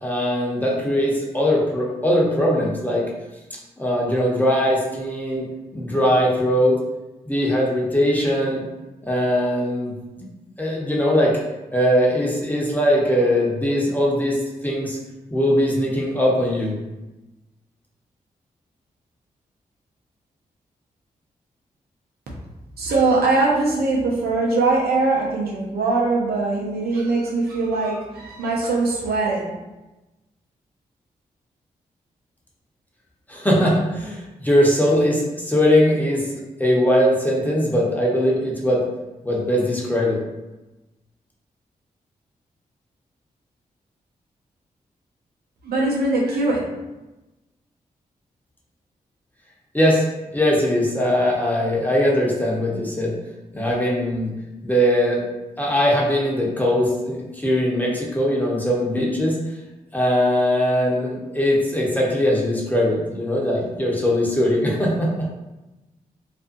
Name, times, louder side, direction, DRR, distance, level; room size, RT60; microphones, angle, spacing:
voice 1, 0.0-3.0 3.8-5.5 5.7-6.8 7.3-8.6 9.1-9.9 10.2-10.3 10.6-11.4 11.7-15.0 15.3-16.8 33.3-38.8 39.2-40.2 49.7-50.0 50.3-53.1 53.5-54.3 54.6-55.2 55.6-59.4 59.9-65.1, equal, 10° left, -4 dB, 0.9 m, -20 dB
voice 2, 22.8-29.4 45.6-46.6, right 3 dB, 80° right, -2 dB, 0.7 m, -21 dB
2.6 x 2.3 x 2.5 m, 1.1 s
supercardioid pair, 40°, 16 cm